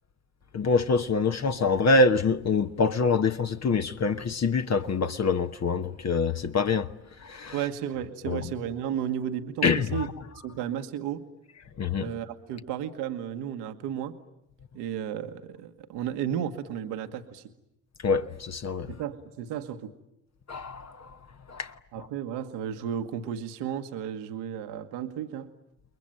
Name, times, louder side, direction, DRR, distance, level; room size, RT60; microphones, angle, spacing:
voice 1, 0.5-6.9 7.2-7.6 8.2-8.5 9.6-10.1 11.8-12.1 18.0-18.9 20.5-21.2 21.5-22.1, left 4 dB, 40° left, 1.2 m, -25 dB
voice 2, 7.5-10.1 10.4-11.2 12.0-14.1 14.7-17.5 18.9-19.9 21.9-25.5, right 9 dB, 75° right, 1.5 m, -33 dB
29.5 x 21.5 x 9.0 m
hypercardioid pair, 50°, 41 cm